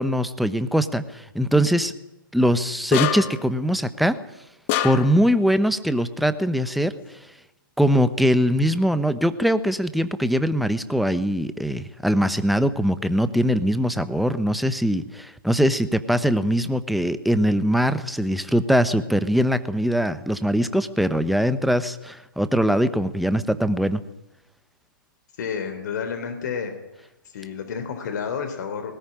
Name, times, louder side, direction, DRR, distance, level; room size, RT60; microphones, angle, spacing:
voice 1, 0.0-1.9 2.3-4.2 4.8-6.9 7.8-24.0, equal, ahead, 12 dB, 1.0 m, -22 dB
sound 1, 2.9-3.5 4.7-5.3, left 12 dB, 35° left, 1.6 m, -25 dB
voice 2, 25.4-26.7 27.3-29.0, left 6 dB, 55° left, 7 dB, 3.9 m, -30 dB
19.5 x 18.0 x 9.9 m, 0.92 s
hypercardioid pair, 135°, 12 cm